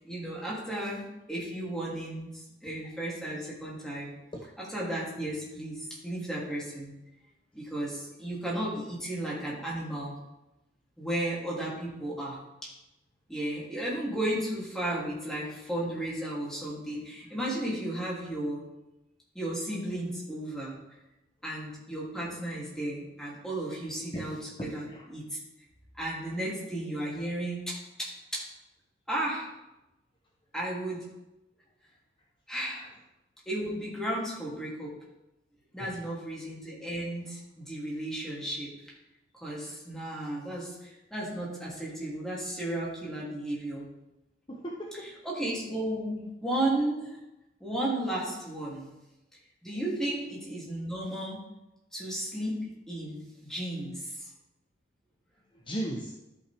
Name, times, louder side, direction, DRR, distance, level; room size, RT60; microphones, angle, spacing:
voice 1, 0.0-4.1 4.6-6.9 7.5-10.2 11.0-12.4 12.6-12.7 13.3-18.6 19.3-20.8 21.4-25.2 25.9-28.5 29.1-29.5 30.5-31.0 32.5-32.9 33.5-34.9 35.7-38.9 39.3-43.8 45.0-47.1 47.6-48.9 49.6-51.4 51.9-54.3, right 1 dB, 5° left, -5 dB, 2.7 m, -34 dB
voice 2, 24.1-25.1 35.8-36.0 44.5-45.1 55.7-56.1, right 1 dB, 30° left, -1 dB, 0.8 m, -37 dB
13.0 x 5.8 x 3.4 m, 0.95 s
head